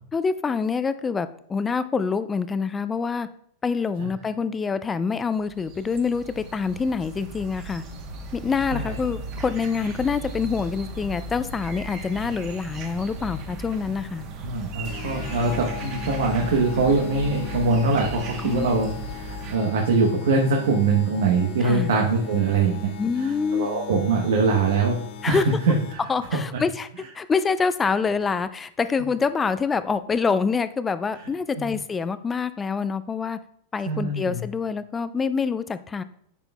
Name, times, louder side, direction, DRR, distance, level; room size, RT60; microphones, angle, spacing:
voice 1, 0.1-3.3 3.6-7.8 8.3-14.2 18.4-18.8 21.6-21.9 23.0-23.7 25.2-25.4 26.1-26.9 27.1-33.4 33.7-36.0, left 5 dB, 15° left, 13 dB, 0.3 m, -26 dB
sound 1, 5.3-19.6, right 1 dB, 40° right, 1.0 m, -36 dB
voice 2, 14.4-18.9 19.2-22.9 23.5-25.0 25.3-25.4 25.7-26.0 31.6-31.7 33.9-34.4, right 4 dB, 85° right, 0 dB, 1.0 m, -22 dB
sound 2, 14.8-26.2, left 9 dB, 45° left, 0.9 m, -39 dB
10.0 x 4.5 x 2.3 m, 0.67 s
supercardioid pair, 135°, 0 cm